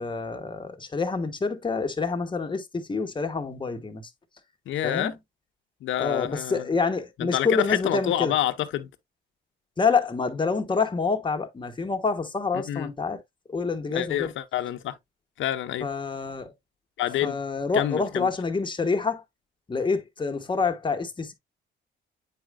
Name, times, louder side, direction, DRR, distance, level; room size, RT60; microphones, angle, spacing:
voice 1, 0.0-4.1 4.8-5.1 6.0-8.3 9.8-13.2 13.5-14.3 15.8-16.5 17.2-19.2 19.7-21.3, left 4 dB, 25° left, 1.3 m, -27 dB
voice 2, 4.7-5.1 5.8-6.6 7.2-8.9 12.7-12.9 13.9-15.0 15.4-15.9 17.0-17.4 17.7-18.3, left 12 dB, 75° left, 0.8 m, -27 dB
8.7 x 4.8 x 2.2 m
cardioid pair, 90°, 20 cm